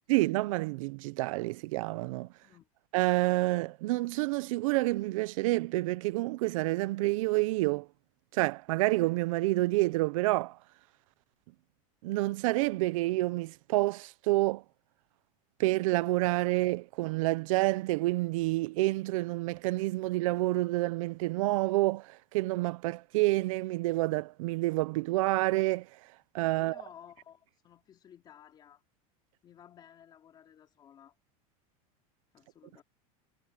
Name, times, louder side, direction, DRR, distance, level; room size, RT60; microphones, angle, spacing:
voice 1, 0.1-2.3 2.9-7.9 8.3-10.6 12.0-14.6 15.6-25.9 26.3-26.8, right 20 dB, 65° right, 0.7 m, -28 dB
voice 2, 26.6-28.8 29.4-31.2 32.3-32.8, left 9 dB, 25° left, 3.7 m, -55 dB
supercardioid pair, 170°, 18 cm